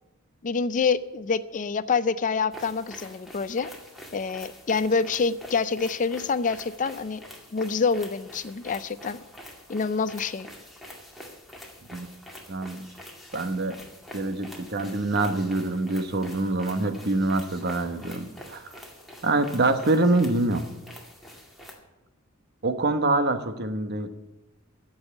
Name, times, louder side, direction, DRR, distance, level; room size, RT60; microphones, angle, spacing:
voice 1, 0.4-3.7 4.1-7.2 7.5-9.2 9.7-10.5, left 5 dB, 40° left, 15 dB, 0.4 m, -26 dB
sound 1, 2.5-21.7, left 1 dB, ahead, 2.2 m, -46 dB
voice 2, 12.5-12.9 13.3-13.8 14.1-18.8 19.2-20.7 22.6-24.1, right 2 dB, 50° right, 9 dB, 1.1 m, -25 dB
15.0 x 5.5 x 9.8 m, 0.98 s
head